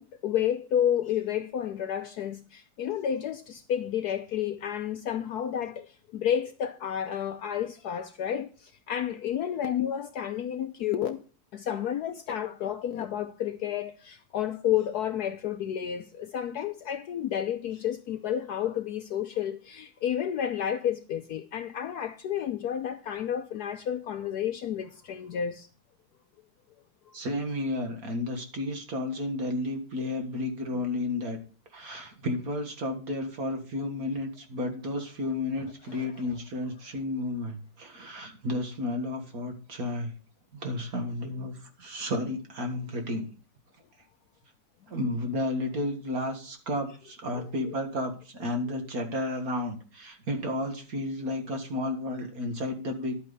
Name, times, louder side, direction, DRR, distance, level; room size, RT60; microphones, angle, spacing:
voice 1, 0.0-11.2 11.5-25.7 27.1-27.2 35.9-36.1, left 9 dB, 70° left, 1.0 m, -31 dB
voice 2, 27.1-31.4 31.7-40.1 40.5-43.3 44.9-53.1, left 1 dB, 50° right, 2.1 m, -32 dB
11.0 x 8.8 x 4.0 m
omnidirectional pair, 2.1 m